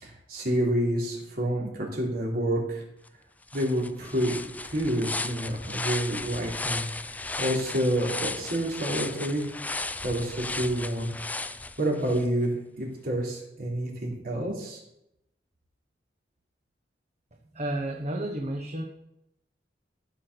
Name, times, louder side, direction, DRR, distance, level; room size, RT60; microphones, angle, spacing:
voice 1, 0.0-2.8 3.5-4.4 4.6-6.9 7.1-9.5 10.0-11.1 11.8-14.8, right 1 dB, 55° right, -2 dB, 3.7 m, -28 dB
sound 1, 3.1-3.2 3.5-12.2, left 3 dB, 10° left, 0.4 m, -35 dB
voice 2, 17.5-18.8, right 1 dB, 40° right, 2 dB, 1.2 m, -31 dB
14.5 x 6.1 x 7.0 m, 0.86 s
head